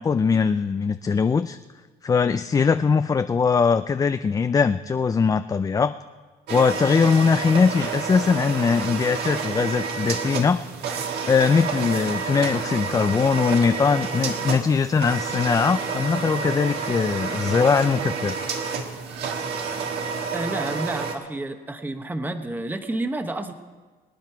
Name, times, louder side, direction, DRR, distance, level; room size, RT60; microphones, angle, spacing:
voice 1, 0.0-1.6 2.0-5.9 6.5-10.6 11.3-18.4, left 5 dB, 20° left, 10 dB, 0.4 m, -21 dB
sound 1, 6.5-21.2, right 5 dB, 70° right, 1.7 m, -29 dB
voice 2, 20.3-23.5, right 2 dB, 10° right, 7 dB, 1.0 m, -30 dB
24.5 x 9.5 x 4.6 m, 1.4 s
cardioid pair, 110°, 17 cm